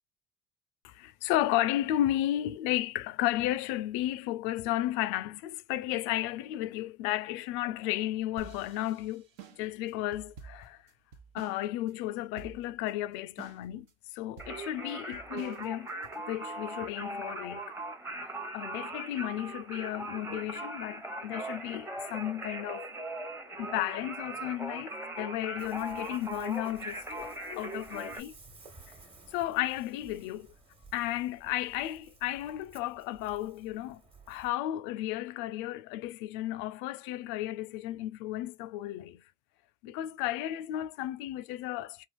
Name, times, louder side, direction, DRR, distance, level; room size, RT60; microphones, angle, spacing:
voice 1, 0.8-9.2 9.6-10.8 11.3-13.9 14.1-15.9 16.3-17.8 18.2-22.9 23.5-28.3 29.3-30.5 30.9-34.0 34.3-39.2 39.8-42.0, left 14 dB, 80° left, 0.4 m, -33 dB
sound 1, 8.4-11.6 11.9-12.0 12.4-12.9 13.4-13.9 14.4-16.2, right 6 dB, 75° right, 0.8 m, -50 dB
Singing, 14.4-28.2, right 2 dB, 10° right, 0.8 m, -40 dB
Ocean, 25.6-34.5, right 3 dB, 30° right, 1.2 m, -56 dB
3.4 x 2.4 x 2.3 m
supercardioid pair, 80°, 19 cm